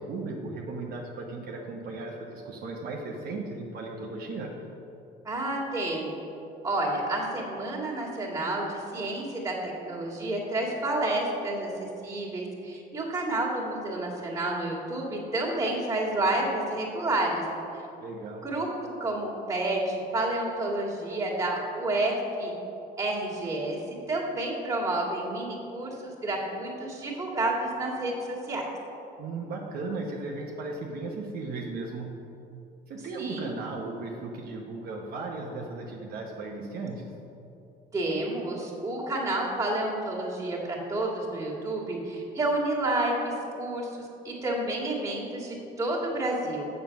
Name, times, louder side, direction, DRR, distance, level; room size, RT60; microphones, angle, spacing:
voice 1, 0.0-4.5 18.0-18.5 29.2-32.1 32.9-37.1, right 3 dB, 65° right, -1 dB, 1.0 m, -36 dB
voice 2, 5.2-6.1 6.6-17.4 18.4-18.7 19.0-22.5 23.0-23.8 24.1-28.7 33.1-33.5 37.9-46.7, right 2 dB, 20° right, -4 dB, 2.1 m, -30 dB
7.3 x 6.9 x 5.8 m, 2.8 s
cardioid pair, 110°, 17 cm